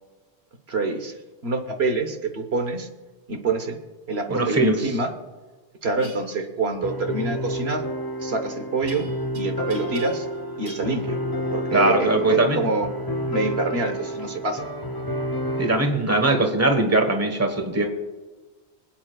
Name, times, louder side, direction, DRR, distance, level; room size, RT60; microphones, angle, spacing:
voice 1, 0.7-1.1 1.4-2.9 3.3-3.8 4.1-5.1 5.8-7.8 8.2-9.1 9.4-10.3 10.6-11.2 11.5-12.9 13.3-14.6, right 3 dB, 65° right, 5 dB, 1.3 m, -26 dB
voice 2, 4.3-4.9 11.7-12.7 15.6-17.9, right 2 dB, 15° right, 5 dB, 1.3 m, -21 dB
sound 1, 6.0-6.2 8.9-9.4 9.7-10.4 10.7-10.9, right 1 dB, 40° right, 4.4 m, -43 dB
sound 2, 6.8-15.7, equal, 20° left, 0.8 m, -30 dB
25.5 x 8.8 x 2.3 m, 1.3 s
omnidirectional pair, 1.1 m